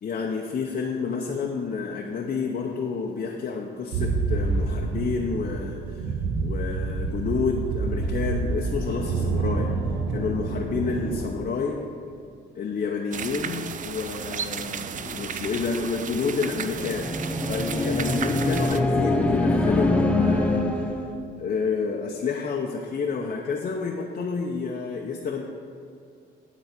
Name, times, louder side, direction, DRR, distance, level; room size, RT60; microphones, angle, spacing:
voice 1, 0.0-9.7 10.1-11.8 12.5-17.2 17.5-20.7 21.4-25.4, left 5 dB, 45° left, 0 dB, 0.7 m, -29 dB
sound 1, 3.9-11.2, right 4 dB, 85° right, 0.8 m, -28 dB
sound 2, 13.1-18.8, right 7 dB, 40° right, 0.4 m, -34 dB
sound 3, 16.5-21.2, left 2 dB, 5° left, 0.7 m, -24 dB
10.5 x 3.9 x 5.8 m, 2.4 s
cardioid pair, 90°, 20 cm